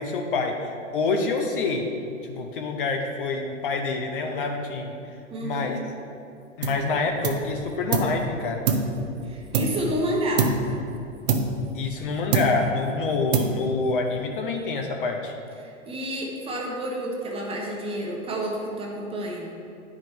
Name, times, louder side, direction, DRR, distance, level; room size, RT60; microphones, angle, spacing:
voice 1, 0.0-1.9 2.2-5.8 6.6-8.6 11.7-15.3, left 3 dB, 45° left, 3 dB, 0.7 m, -27 dB
voice 2, 5.3-5.7 9.2-10.5 15.6-19.5, right 1 dB, 15° right, -2 dB, 1.0 m, -30 dB
sound 1, 6.6-6.9 7.2-8.2 8.7-10.0 10.4-10.8 11.3-12.0 12.3-12.8 13.3-13.9, right 4 dB, 35° right, 0.6 m, -25 dB
10.0 x 4.9 x 3.3 m, 2.5 s
figure-of-eight pair, 100°, 39 cm